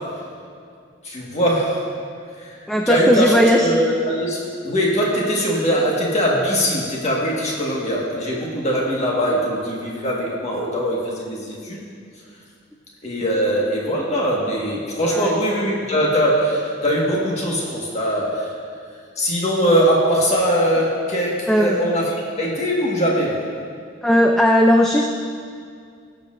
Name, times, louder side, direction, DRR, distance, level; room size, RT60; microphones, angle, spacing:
voice 1, 1.0-1.8 2.4-2.5 2.9-11.8 13.0-18.5 19.2-22.1 22.4-23.4, equal, 35° left, -4 dB, 1.7 m, -21 dB
voice 2, 2.7-3.7 15.0-15.3 21.5-21.8 24.0-25.1, equal, 5° left, 1 dB, 0.4 m, -17 dB
18.0 x 7.5 x 2.6 m, 2.3 s
head